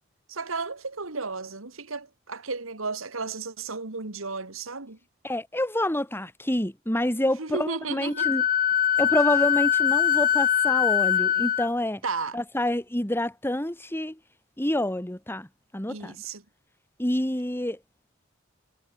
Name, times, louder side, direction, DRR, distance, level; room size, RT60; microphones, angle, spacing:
voice 1, 0.3-5.0 7.4-8.3 12.0-12.4 15.9-16.4, right 4 dB, 80° right, 2.3 m, -33 dB
voice 2, 5.2-8.4 9.0-12.0 12.3-14.2 14.6-15.5 15.7-16.1 17.0-17.8, left 1 dB, 10° left, 2.1 m, -27 dB
Wind instrument woodwind instrument, 8.2-11.7, left 10 dB, 45° left, 0.6 m, -22 dB
head